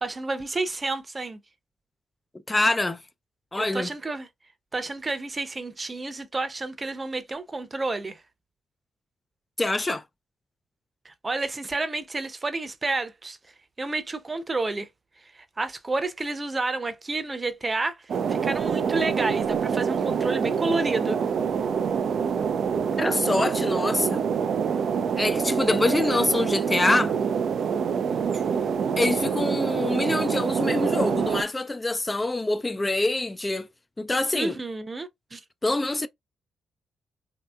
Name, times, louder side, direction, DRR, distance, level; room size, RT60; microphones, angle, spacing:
voice 1, 0.0-1.4 3.5-4.3 4.7-8.2 11.0-13.4 13.8-14.9 15.3-21.2 34.3-35.4, right 2 dB, 30° right, 0.7 m, -30 dB
voice 2, 2.5-3.0 3.5-3.9 9.6-10.0 23.0-24.3 25.2-27.1 29.0-33.7 34.0-34.6 35.6-36.1, left 2 dB, 20° left, 0.4 m, -25 dB
sound 1, 18.1-31.4, right 6 dB, 60° right, 0.3 m, -26 dB
3.2 x 2.8 x 2.3 m
hypercardioid pair, 40°, 0 cm